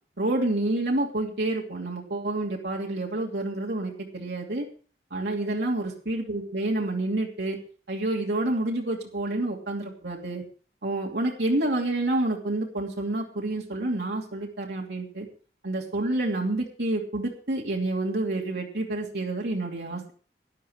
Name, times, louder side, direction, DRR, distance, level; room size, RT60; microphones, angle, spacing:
voice 1, 0.2-4.7 5.1-7.6 7.9-10.4 10.8-15.3 15.6-20.1, right 2 dB, 75° right, -1 dB, 2.7 m, -28 dB
12.5 x 10.5 x 4.7 m, 0.40 s
head